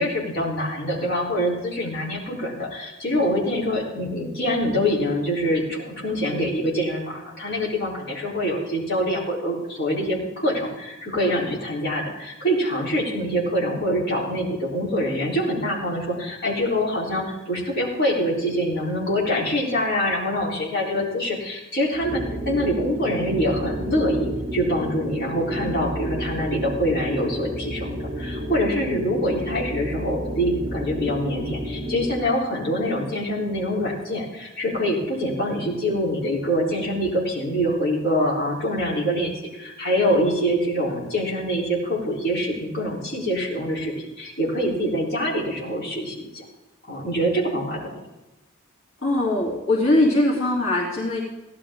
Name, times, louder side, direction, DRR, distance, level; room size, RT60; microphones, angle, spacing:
voice 1, 0.0-46.4 46.8-47.9, equal, 55° left, -5 dB, 4.0 m, -25 dB
sound 1, 21.9-32.3, equal, 20° right, 1.2 m, -31 dB
voice 2, 49.0-51.2, left 1 dB, 90° left, -4 dB, 2.9 m, -21 dB
16.5 x 11.5 x 3.7 m, 1.0 s
head